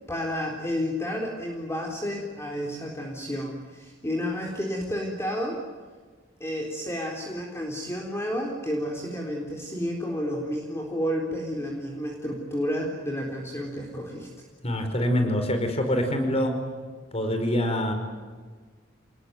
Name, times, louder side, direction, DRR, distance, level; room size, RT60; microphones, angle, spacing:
voice 1, 0.1-5.6 6.4-14.4, equal, 15° left, -1 dB, 3.8 m, -31 dB
voice 2, 14.6-16.6 17.1-17.9, equal, 35° left, 5 dB, 5.0 m, -25 dB
28.5 x 21.0 x 9.3 m, 1.5 s
head